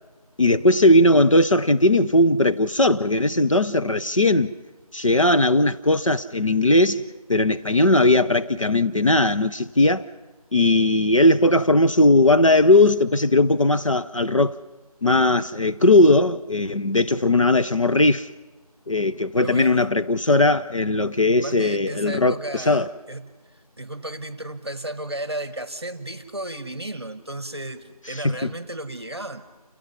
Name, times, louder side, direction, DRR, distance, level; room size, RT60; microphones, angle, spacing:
voice 1, 0.4-4.5 4.9-7.0 7.3-10.1 10.5-14.6 15.0-18.3 18.9-22.9 28.1-28.3, left 2 dB, 55° left, 0.6 m, -18 dB
voice 2, 19.4-19.9 21.4-29.5, right 1 dB, 45° right, 1.2 m, -34 dB
29.5 x 17.0 x 5.6 m
figure-of-eight pair, 175°, 20 cm